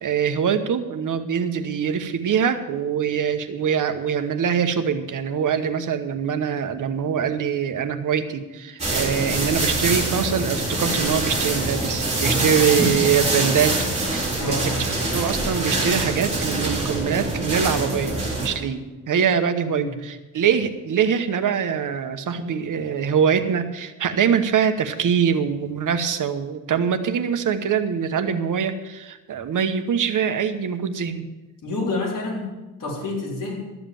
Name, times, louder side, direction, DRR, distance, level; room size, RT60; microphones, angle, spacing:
voice 1, 0.0-13.8 14.1-31.3, right 7 dB, 65° right, 9 dB, 1.1 m, -23 dB
sound 1, 8.8-18.5, right 2 dB, 20° right, 4.0 m, -24 dB
voice 2, 14.4-14.8 19.7-20.0 31.6-32.5 32.8-33.6, left 2 dB, 70° left, -3 dB, 3.9 m, -28 dB
13.0 x 7.4 x 7.6 m, 1.1 s
wide cardioid pair, 140°, 34 cm